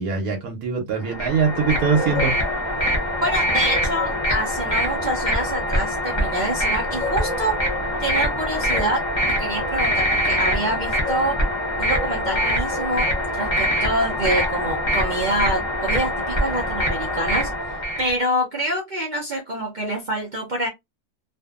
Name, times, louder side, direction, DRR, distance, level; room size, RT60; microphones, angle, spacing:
voice 1, 0.0-2.4, right 5 dB, 80° right, 1.2 m, -22 dB
sound 1, 1.0-18.1, equal, 25° left, 0.7 m, -24 dB
sound 2, 1.5-6.6 7.0-11.4 11.9-13.3 14.3-14.8, left 3 dB, 60° left, 0.4 m, -34 dB
voice 2, 3.2-7.6 8.0-9.0 9.3-11.4 11.8-20.7, right 1 dB, 55° right, 0.5 m, -26 dB
2.6 x 2.5 x 2.3 m
omnidirectional pair, 1.6 m